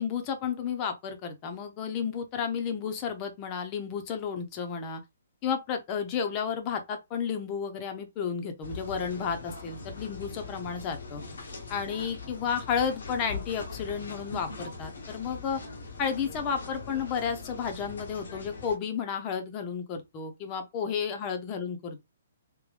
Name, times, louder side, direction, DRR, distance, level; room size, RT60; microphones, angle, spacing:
voice 1, 0.0-5.0 5.4-11.2 11.7-15.6 16.0-22.0, left 7 dB, 30° left, 1.0 m, -32 dB
sound 1, 8.6-18.8, left 3 dB, 65° left, 1.1 m, -41 dB
3.9 x 2.6 x 3.3 m
figure-of-eight pair, 125°, 0 cm